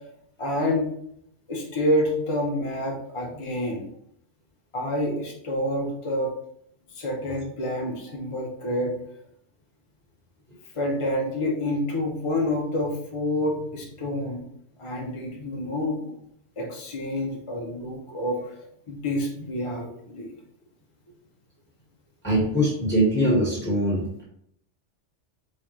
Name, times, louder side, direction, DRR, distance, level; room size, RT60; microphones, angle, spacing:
voice 1, 0.4-0.9 1.5-3.8 4.7-6.3 6.9-9.0 10.7-14.5 14.8-16.0 16.6-18.5 18.9-20.3, left 1 dB, 35° left, -2 dB, 0.7 m, -28 dB
voice 2, 22.2-24.2, equal, 10° left, -5 dB, 1.3 m, -22 dB
4.2 x 3.6 x 3.1 m, 0.71 s
omnidirectional pair, 1.2 m